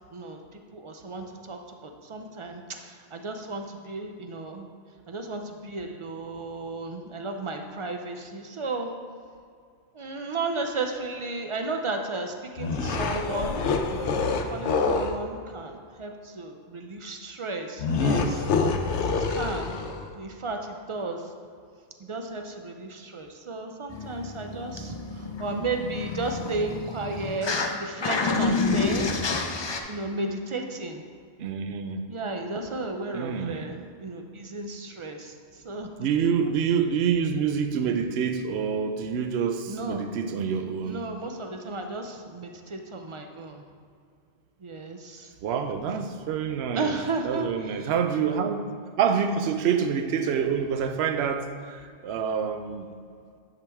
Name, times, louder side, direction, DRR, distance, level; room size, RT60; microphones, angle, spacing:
voice 1, 0.1-4.7 5.1-8.9 9.9-13.6 13.9-18.5 19.1-19.8 20.2-21.3 22.0-29.4 29.9-31.0 32.1-35.9 39.7-40.0 40.8-43.6 44.6-45.3 46.7-47.9, right 3 dB, 45° right, 4 dB, 0.4 m, -34 dB
sound 1, 12.6-15.2 17.8-20.1, left 4 dB, 85° left, 0.9 m, -26 dB
sound 2, 23.9-27.7 28.0-29.8, left 4 dB, 45° left, 0.3 m, -29 dB
voice 2, 31.4-32.0 33.1-33.7 36.0-41.0 45.4-47.0 47.2-48.7 49.0-52.9, right 7 dB, 70° right, 8 dB, 0.8 m, -27 dB
10.0 x 4.9 x 3.5 m, 2.2 s
omnidirectional pair, 1.1 m